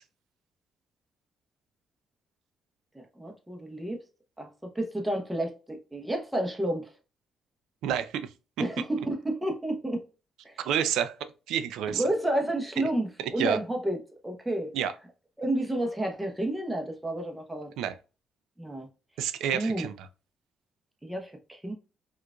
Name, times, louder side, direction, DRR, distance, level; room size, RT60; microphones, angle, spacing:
voice 1, 2.9-4.0 4.4-6.9 8.6-10.0 10.4-10.6 11.9-14.7 15.4-17.7 18.6-18.9 19.5-19.9 21.0-21.7, right 1 dB, 10° right, 0.9 m, -30 dB
voice 2, 7.8-8.3 8.6-8.7 10.6-11.1 11.5-12.0 13.2-13.6 14.7-14.9 17.8-18.0 19.2-20.1, right 9 dB, 85° right, 0.4 m, -29 dB
4.5 x 2.4 x 2.3 m
cardioid pair, 90°, 0 cm